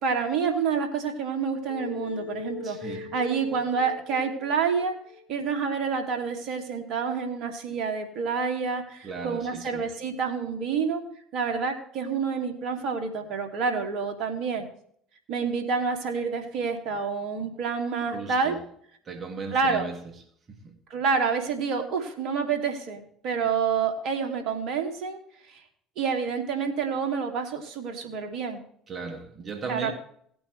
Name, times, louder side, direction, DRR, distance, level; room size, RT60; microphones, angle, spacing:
voice 1, 0.0-5.0 5.3-11.0 11.3-14.7 15.3-18.5 19.5-19.9 20.9-25.2 25.5-25.6 26.0-28.6 29.7-29.9, right 5 dB, 60° right, 2.6 m, -28 dB
sound 1, 1.7-5.4, left 6 dB, 85° left, 2.0 m, -40 dB
voice 2, 2.6-3.1 9.0-9.8 18.1-18.6 19.1-20.0 20.5-20.8 28.9-29.9, right 4 dB, 40° right, 2.2 m, -37 dB
18.0 x 8.8 x 3.3 m
hypercardioid pair, 65°, 0 cm